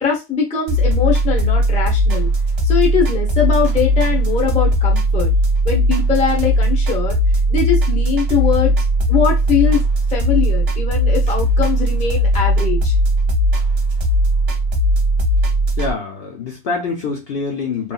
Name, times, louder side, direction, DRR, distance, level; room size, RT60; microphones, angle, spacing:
voice 1, 0.0-2.3 2.6-5.3 5.6-7.2 7.5-8.7 9.1-9.8 10.1-12.9, left 7 dB, 10° left, 0.5 m, -21 dB
sound 1, 0.7-15.9, equal, 50° right, 1.0 m, -17 dB
voice 2, 15.8-17.9, left 4 dB, 55° left, 0.7 m, -25 dB
3.0 x 2.3 x 2.3 m
omnidirectional pair, 1.5 m